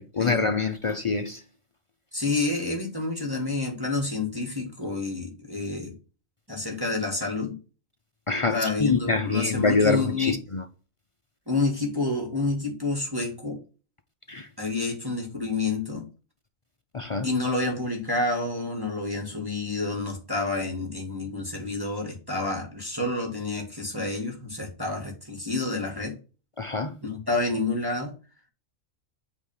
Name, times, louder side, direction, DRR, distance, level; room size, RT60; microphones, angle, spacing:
voice 1, 0.0-1.4 8.3-10.6 14.3-14.5 16.9-17.3 26.6-27.0, left 4 dB, 55° left, 0.3 m, -25 dB
voice 2, 2.1-6.0 6.5-7.6 8.5-10.4 11.5-13.6 14.6-16.0 17.2-26.2 27.0-28.1, left 3 dB, 15° right, 1.7 m, -29 dB
8.3 x 3.0 x 5.4 m
omnidirectional pair, 1.4 m